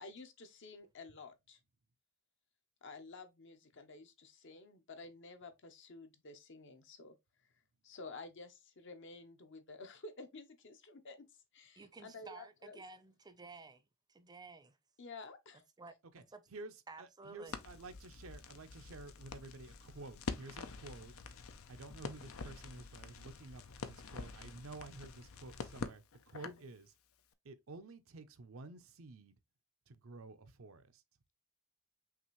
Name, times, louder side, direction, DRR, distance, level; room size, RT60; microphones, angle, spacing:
voice 1, 0.0-1.6 2.8-7.2 7.8-11.3 11.5-12.8 15.0-15.6, left 3 dB, 60° left, 0.8 m, -52 dB
voice 2, 11.8-13.8 14.1-14.8 15.8-15.9 16.3-16.4 16.9-17.6, right 4 dB, 20° right, 0.6 m, -53 dB
voice 3, 16.5-21.1 21.7-26.9 27.4-29.4 29.9-31.0, right 3 dB, 75° right, 0.6 m, -51 dB
Crackle, 17.5-26.7, left 4 dB, 85° left, 0.6 m, -47 dB
5.8 x 2.5 x 3.0 m
head